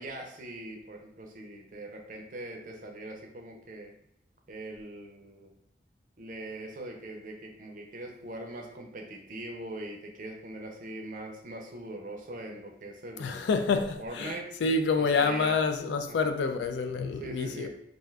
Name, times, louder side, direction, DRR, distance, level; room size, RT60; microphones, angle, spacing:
voice 1, 0.0-3.9 4.5-5.5 6.2-14.5 15.0-15.6 16.1-16.3 17.2-17.7, right 1 dB, 50° right, 0.5 m, -41 dB
voice 2, 13.2-17.7, left 4 dB, 90° left, 0.3 m, -28 dB
2.5 x 2.3 x 3.2 m
head